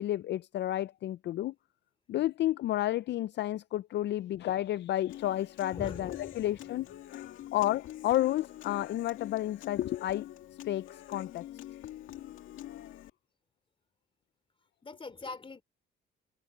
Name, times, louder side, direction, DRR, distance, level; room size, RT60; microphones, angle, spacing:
voice 1, 0.0-1.5 2.1-6.9 7.5-10.3 10.6-11.4, left 14 dB, 65° left, 0.4 m, -31 dB
Human voice / Acoustic guitar, 5.1-13.1, left 13 dB, 90° left, 2.2 m, -45 dB
voice 2, 5.7-6.7 7.2-7.5 14.8-15.6, left 3 dB, 25° left, 3.2 m, -44 dB
cardioid pair, 90°, 20 cm